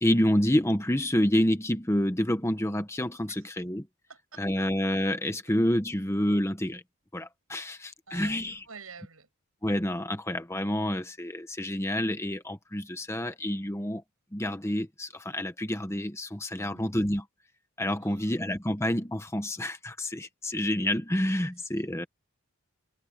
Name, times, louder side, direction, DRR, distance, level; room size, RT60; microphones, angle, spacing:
voice 1, 0.0-3.9 4.4-6.8 7.1-8.6 9.6-14.0 14.3-17.3 17.8-22.1, left 1 dB, 10° left, 1.1 m, -28 dB
voice 2, 4.1-4.6 8.1-8.4 8.6-9.3 16.6-16.8 18.0-18.4 21.8-22.1, right 5 dB, 70° right, 6.6 m, -49 dB
head